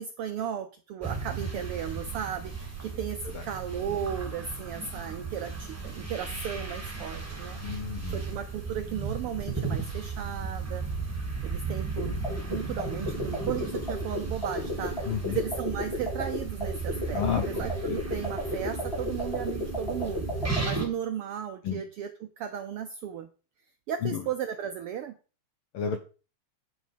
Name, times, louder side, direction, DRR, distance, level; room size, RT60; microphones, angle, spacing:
voice 1, 0.0-7.6 8.1-10.9 11.4-12.2 12.4-20.2 20.6-23.3 23.9-25.1, right 8 dB, 80° right, 8 dB, 1.3 m, -35 dB
sound 1, 1.0-20.8, right 4 dB, 5° right, 2.2 m, -35 dB
voice 2, 7.6-8.2 15.1-15.4 17.1-18.0 21.6-21.8 24.0-24.2 25.7-26.0, left 8 dB, 70° left, 7 dB, 1.4 m, -31 dB
sound 2, 12.0-20.7, left 2 dB, 20° left, 2.4 m, -34 dB
9.2 x 6.4 x 5.1 m, 0.36 s
omnidirectional pair, 3.3 m